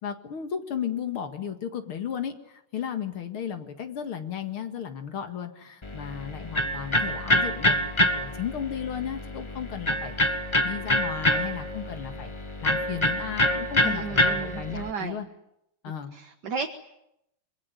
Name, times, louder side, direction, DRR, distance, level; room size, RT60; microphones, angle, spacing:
voice 1, 0.0-12.3 12.6-15.3 15.8-16.2, left 8 dB, 85° left, 7 dB, 2.8 m, -34 dB
Electric guitar, 5.8-14.9, equal, 20° left, 0.9 m, -26 dB
voice 2, 13.8-15.2 16.1-16.7, right 5 dB, 55° right, 4 dB, 2.0 m, -34 dB
26.0 x 23.0 x 9.5 m, 0.82 s
omnidirectional pair, 2.3 m